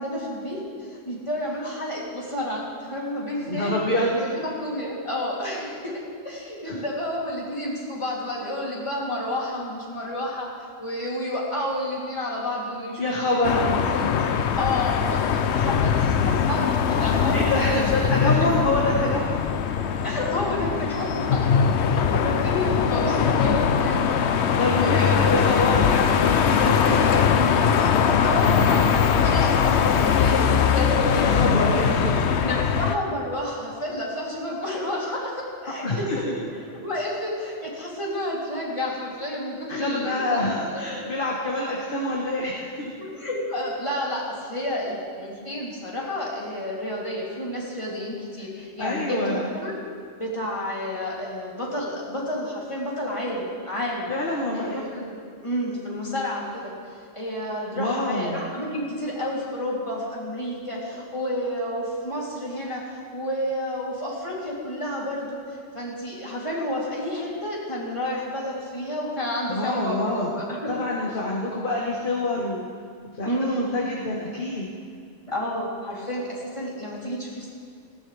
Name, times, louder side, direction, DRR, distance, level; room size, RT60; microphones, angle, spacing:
voice 1, 0.0-3.8 4.1-10.5 10.8-18.6 20.0-21.5 21.8-25.3 27.7-31.5 32.4-41.1 43.0-49.8 50.2-54.1 54.5-55.2 55.4-71.1 73.2-73.7 75.3-77.5, left 1 dB, 25° left, -5 dB, 3.1 m, -30 dB
voice 2, 3.5-4.2 6.6-6.8 13.0-13.8 17.1-19.4 24.6-27.7 28.1-28.2 31.1-32.4 35.8-36.4 39.7-42.9 48.8-49.5 54.1-54.8 57.8-58.4 69.5-70.3 70.7-72.7 73.2-74.7, left 2 dB, 45° left, -3 dB, 1.6 m, -26 dB
sound 1, 13.4-33.0, left 7 dB, 65° left, 0.9 m, -21 dB
19.0 x 16.0 x 3.4 m, 2.2 s
omnidirectional pair, 1.3 m